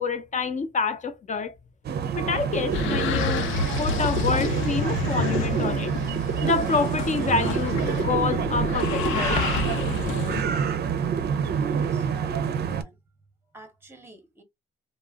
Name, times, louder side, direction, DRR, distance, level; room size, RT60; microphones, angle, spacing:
voice 1, 0.0-1.5 2.2-5.9 6.4-9.5, left 4 dB, 40° left, 0.7 m, -27 dB
sound 1, 1.8-12.8, right 7 dB, 55° right, 0.5 m, -27 dB
sound 2, 2.7-10.4, left 7 dB, 80° left, 0.5 m, -30 dB
voice 2, 11.6-13.1 13.5-14.4, right 1 dB, 10° right, 0.8 m, -49 dB
2.4 x 2.0 x 3.5 m
cardioid pair, 90°, 20 cm